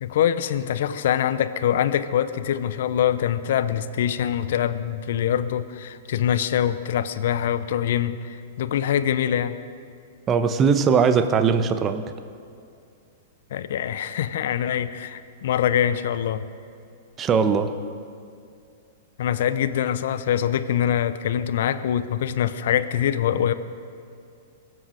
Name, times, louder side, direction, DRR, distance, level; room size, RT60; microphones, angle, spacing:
voice 1, 0.0-9.6 13.5-16.4 19.2-23.5, left 10 dB, 65° left, 12 dB, 0.7 m, -24 dB
voice 2, 10.3-12.0 17.2-17.7, right 6 dB, 25° right, 10 dB, 0.9 m, -20 dB
22.5 x 7.8 x 5.1 m, 2.5 s
hypercardioid pair, 110°, 0 cm